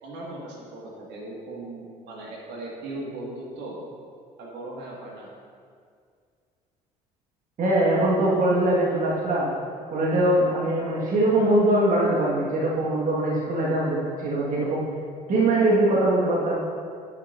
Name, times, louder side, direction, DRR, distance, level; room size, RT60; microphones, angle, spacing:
voice 1, 0.0-3.8 4.4-5.3, right 2 dB, 55° right, -4 dB, 2.0 m, -38 dB
voice 2, 7.6-9.5 9.9-14.8 15.3-16.6, right 1 dB, 40° right, -5 dB, 1.8 m, -22 dB
9.8 x 9.6 x 2.7 m, 2.2 s
figure-of-eight pair, 55°, 21 cm